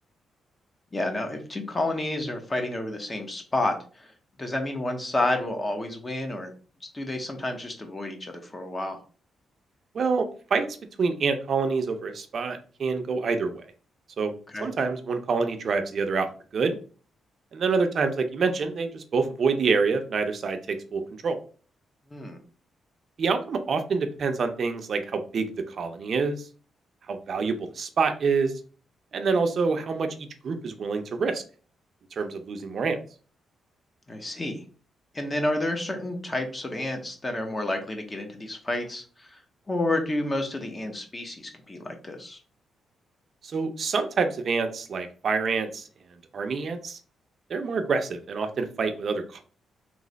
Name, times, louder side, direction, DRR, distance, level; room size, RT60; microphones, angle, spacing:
voice 1, 0.9-4.1 4.4-6.5 6.9-9.0 14.5-14.7 22.1-22.4 34.1-34.6 35.1-39.4 39.7-42.4, left 1 dB, 25° left, 5 dB, 0.9 m, -30 dB
voice 2, 9.9-10.7 11.0-13.6 14.2-14.3 14.6-16.3 16.5-16.8 17.5-21.4 23.2-26.4 27.1-28.5 29.1-31.4 32.2-33.0 43.4-45.9 46.3-47.0 47.5-49.4, right 4 dB, 50° right, 7 dB, 0.6 m, -26 dB
3.2 x 3.2 x 3.9 m, 0.39 s
cardioid pair, 120°, 0 cm